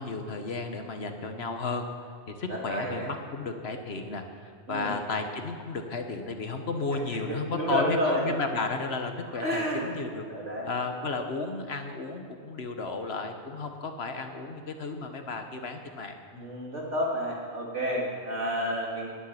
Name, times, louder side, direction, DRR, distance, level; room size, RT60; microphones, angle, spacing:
voice 1, 0.0-1.9 2.3-10.3 10.6-16.4, left 3 dB, 60° left, 6 dB, 1.3 m, -33 dB
voice 2, 2.5-3.1 4.7-4.9 7.3-8.2 9.3-9.9 10.3-10.7 16.3-19.1, equal, 75° right, -3 dB, 3.3 m, -30 dB
10.0 x 9.9 x 9.8 m, 2.1 s
omnidirectional pair, 1.2 m